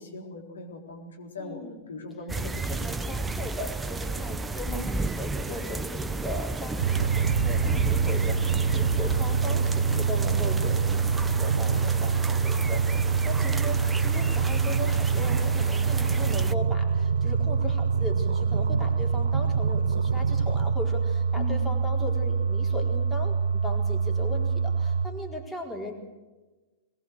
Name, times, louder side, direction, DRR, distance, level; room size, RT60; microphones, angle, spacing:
voice 1, 0.0-1.6 1.9-2.7 4.7-5.2 5.5-5.7 21.4-21.7, left 3 dB, 70° left, 1 dB, 4.0 m, -39 dB
voice 2, 1.4-1.9 2.6-25.9, left 2 dB, 5° left, -1 dB, 4.4 m, -38 dB
sound 1, 2.3-16.5, right 3 dB, 10° right, 0.8 m, -33 dB
sound 2, 6.8-25.1, right 5 dB, 65° right, 1.2 m, -25 dB
22.0 x 20.0 x 8.0 m, 1.2 s
figure-of-eight pair, 100°, 0 cm